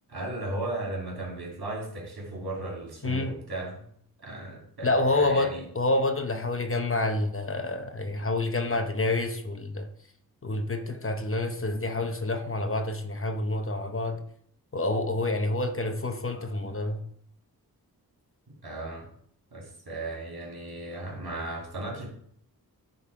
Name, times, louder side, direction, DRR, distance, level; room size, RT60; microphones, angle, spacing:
voice 1, 0.1-3.8 4.2-5.6 18.6-19.1 19.5-22.1, right 2 dB, 70° right, 3.1 m, -36 dB
voice 2, 3.0-3.4 4.8-9.9 10.4-14.2 14.7-17.0, left 2 dB, 35° left, 0.9 m, -28 dB
9.7 x 4.0 x 4.7 m
cardioid pair, 60°, 38 cm